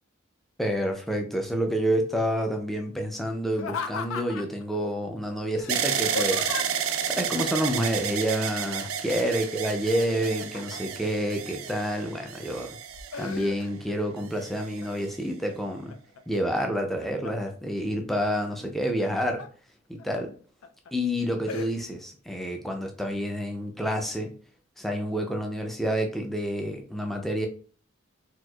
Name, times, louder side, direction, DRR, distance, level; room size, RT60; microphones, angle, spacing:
voice 1, 0.6-6.8 7.1-12.8 13.2-15.9 16.3-19.4 19.9-20.3 20.9-24.3 24.8-27.5, equal, ahead, 2 dB, 0.4 m, -28 dB
Laughter, 3.5-4.6 5.6-6.9 8.7-9.1 9.4-11.0 11.6-12.3 12.7-13.9 14.3-14.9 15.4-16.2 16.7-17.5 18.7-19.5 20.0-20.1 20.6-20.9 21.5-21.7, left 5 dB, 75° left, 0.4 m, -37 dB
sound 1, 5.7-13.7 14.4-15.1, right 8 dB, 80° right, 0.4 m, -31 dB
4.3 x 2.4 x 2.3 m, 0.42 s
head